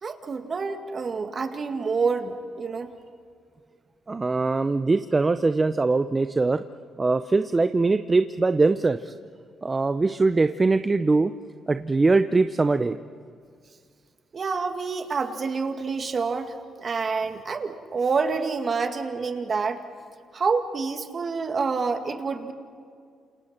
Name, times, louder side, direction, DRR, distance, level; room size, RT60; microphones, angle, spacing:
voice 1, 0.0-2.9 14.3-16.5 16.8-19.8 20.3-22.5, right 4 dB, 45° right, 6 dB, 2.1 m, -27 dB
voice 2, 4.1-6.6 7.0-9.1 9.6-11.3 11.7-13.0, right 3 dB, 30° right, 10 dB, 0.7 m, -22 dB
28.5 x 28.0 x 4.4 m, 2.2 s
supercardioid pair, 65°, 0 cm